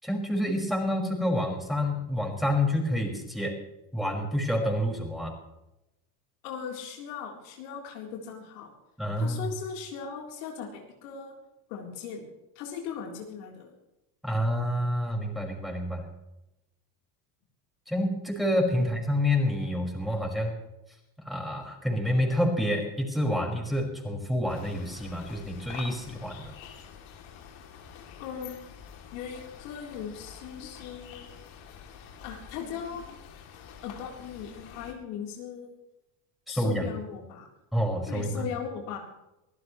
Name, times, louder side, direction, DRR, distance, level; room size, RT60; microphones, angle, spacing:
voice 1, 0.0-3.6 3.9-5.3 9.0-9.4 14.2-16.1 17.9-20.6 21.2-26.5 36.5-36.9 37.7-38.4, left 1 dB, ahead, -1 dB, 5.4 m, -28 dB
voice 2, 6.4-8.7 9.2-11.3 11.7-12.3 12.6-13.7 18.8-18.9 28.2-28.6 29.1-31.3 32.2-33.0 33.8-35.8 36.5-37.5 38.1-39.0, left 7 dB, 85° left, 0 dB, 3.8 m, -38 dB
sound 1, 24.5-34.9, left 8 dB, 70° left, 3.0 m, -47 dB
24.0 x 15.5 x 3.2 m, 0.92 s
supercardioid pair, 105°, 49 cm